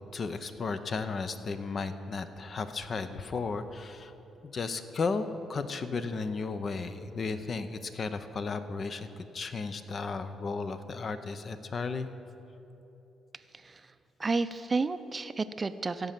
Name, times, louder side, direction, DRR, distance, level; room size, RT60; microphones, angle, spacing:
voice 1, 0.1-4.1 4.4-12.1, left 4 dB, 45° left, 10 dB, 0.7 m, -34 dB
voice 2, 13.5-13.9 14.2-16.1, right 3 dB, 30° right, 12 dB, 0.5 m, -31 dB
16.0 x 5.4 x 7.6 m, 3.0 s
cardioid pair, 90°, 0 cm